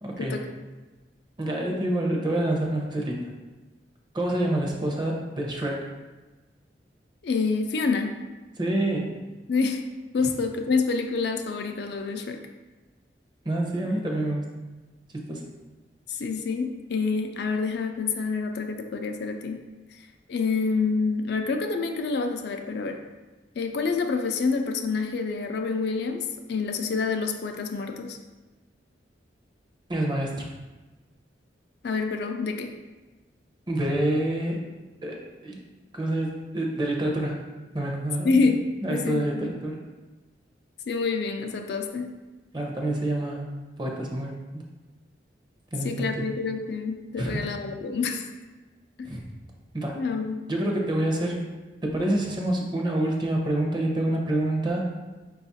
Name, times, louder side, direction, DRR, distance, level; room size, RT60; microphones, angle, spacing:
voice 1, 0.0-0.4 1.4-3.3 4.1-5.9 8.6-9.2 10.2-10.3 13.4-14.4 15.1-15.5 29.9-30.5 33.7-34.6 35.0-35.6 35.9-37.4 37.7-38.3 38.8-39.9 42.5-43.5 43.8-44.3 45.7-46.3 47.2-47.4 49.0-49.2 49.7-50.0 50.5-51.5 51.8-54.9, right 1 dB, 25° right, 0 dB, 0.6 m, -27 dB
voice 2, 7.2-8.2 9.5-9.8 10.1-12.4 16.1-19.6 19.9-20.0 20.3-23.0 23.6-28.2 31.8-32.7 38.2-39.5 40.9-42.1 45.8-48.2 49.0-49.1 50.0-50.5, left 4 dB, 65° left, 4 dB, 0.4 m, -27 dB
4.9 x 2.4 x 4.0 m, 1.2 s
head